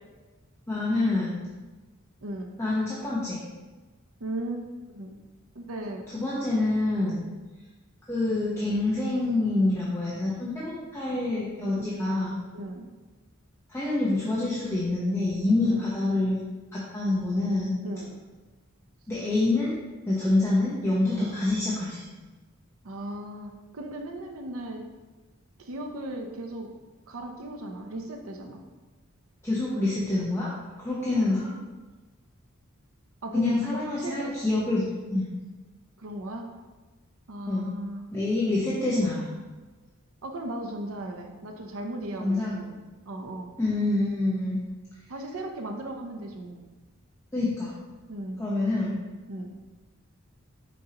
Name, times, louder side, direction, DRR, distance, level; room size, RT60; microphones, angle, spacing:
voice 1, 0.7-1.4 2.6-3.4 6.1-7.2 8.1-12.4 13.7-16.4 16.7-17.8 19.1-19.7 20.1-22.0 29.4-30.5 30.8-31.5 33.3-34.8 35.1-35.3 37.5-37.7 38.1-39.3 42.2-42.6 43.6-44.6 47.3-47.7 48.4-48.9, left 2 dB, 15° left, -7 dB, 0.9 m, -26 dB
voice 2, 2.2-2.5 4.2-4.7 4.9-5.1 5.5-6.0 11.7-11.8 12.5-12.9 15.6-15.9 17.8-18.1 21.1-21.3 22.8-24.9 25.6-26.7 27.1-28.6 31.1-31.6 33.2-34.3 36.0-36.5 37.3-38.1 40.2-42.8 43.1-43.5 45.1-46.6 48.1-48.4 49.3-49.5, right 1 dB, 85° right, 3 dB, 0.7 m, -36 dB
6.2 x 5.4 x 2.9 m, 1.3 s
head